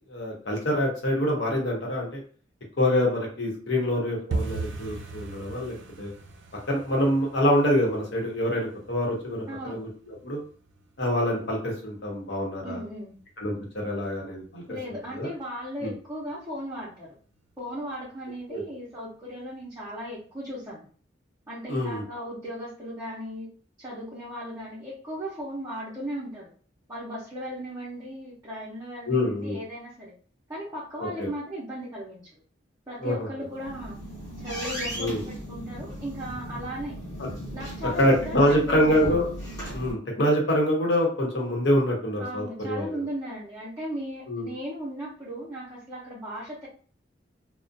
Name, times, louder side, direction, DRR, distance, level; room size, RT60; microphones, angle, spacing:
voice 1, 0.1-2.2 2.8-6.1 6.7-10.4 11.0-12.8 13.4-14.8 15.1-15.3 15.8-15.9 18.5-18.6 21.7-22.0 29.1-29.6 31.2-31.3 33.0-33.3 35.0-35.2 38.0-39.3 39.7-42.9 44.3-44.5, equal, 65° left, -1 dB, 0.9 m, -25 dB
sound 1, 4.3-15.0 15.3-16.0 16.2-16.5 16.8-17.2 17.5-17.6 18.1-18.6 18.9-19.0 19.5-19.6, right 3 dB, 70° right, 0.4 m, -40 dB
voice 2, 9.5-9.8 12.6-13.1 14.7-17.1 17.6-20.9 21.5-23.5 23.8-26.5 26.9-30.1 30.5-32.3 32.9-34.0 34.4-37.0 37.5-39.0 42.2-46.7, equal, 20° right, -9 dB, 0.6 m, -36 dB
sound 2, 33.4-39.9, equal, 20° left, 0.8 m, -37 dB
2.4 x 2.1 x 2.6 m, 0.43 s
head